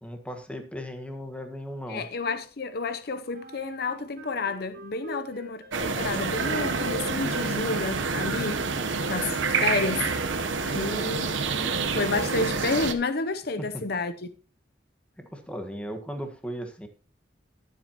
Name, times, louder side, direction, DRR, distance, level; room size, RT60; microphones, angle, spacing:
voice 1, 0.0-2.1 10.7-12.0 13.6-13.8 15.2-16.9, equal, 5° left, 1.5 m, -37 dB
voice 2, 1.9-8.6 9.1-10.1 10.6-11.3 11.9-14.1, left 3 dB, 55° left, 0.7 m, -30 dB
Wind instrument woodwind instrument, 3.3-9.0, right 1 dB, 50° right, 2.7 m, -46 dB
sound 1, 5.7-12.9, right 4 dB, 85° right, 1.0 m, -28 dB
19.5 x 7.5 x 2.9 m
head